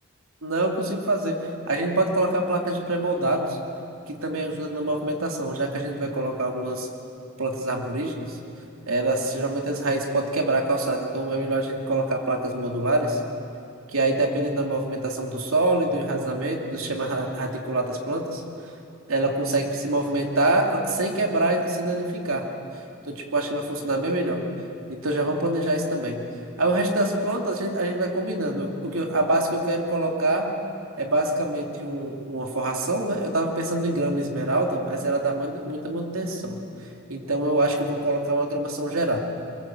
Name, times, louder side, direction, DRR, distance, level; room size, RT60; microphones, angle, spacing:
voice 1, 0.4-3.6 4.1-6.9 7.4-8.4 8.9-13.2 13.9-18.4 19.1-22.5 23.1-24.4 24.9-26.2 26.6-30.5 31.0-36.6 37.1-39.2, right 2 dB, 80° right, 2 dB, 2.7 m, -25 dB
23.0 x 22.0 x 7.7 m, 2.6 s
head